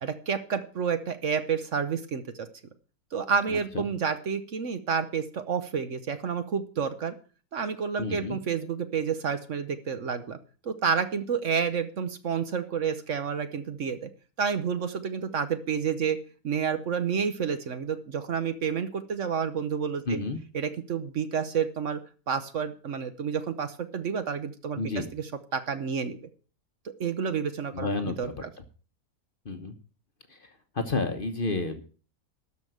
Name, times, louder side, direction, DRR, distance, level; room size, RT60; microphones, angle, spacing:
voice 1, 0.0-2.5 3.1-7.1 7.5-10.4 10.6-14.1 14.4-16.2 16.4-20.2 20.5-22.0 22.3-26.2 26.8-28.5, right 6 dB, 55° right, 10 dB, 1.1 m, -30 dB
voice 2, 3.5-3.8 8.0-8.4 20.1-20.4 24.8-25.1 27.7-28.3 29.4-29.7 30.3-30.5 30.7-31.8, left 3 dB, 40° left, 8 dB, 1.1 m, -30 dB
12.5 x 5.2 x 7.8 m, 0.39 s
omnidirectional pair, 1.7 m